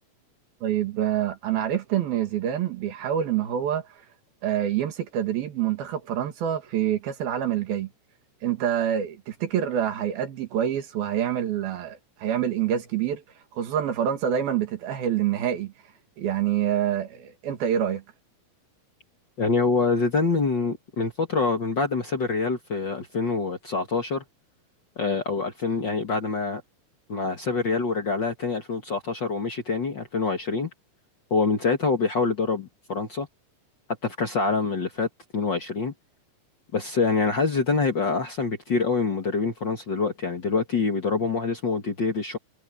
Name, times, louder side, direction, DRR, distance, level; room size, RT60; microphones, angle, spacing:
voice 1, 0.6-3.9 4.4-7.9 8.4-13.2 13.5-15.7 16.2-18.0, right 10 dB, 85° right, 4.0 m, -26 dB
voice 2, 19.4-24.2 24.9-26.6 27.1-30.7 31.3-33.3 34.0-35.9 36.7-42.4, left 4 dB, 40° left, 1.8 m, -25 dB
omnidirectional pair, 4.1 m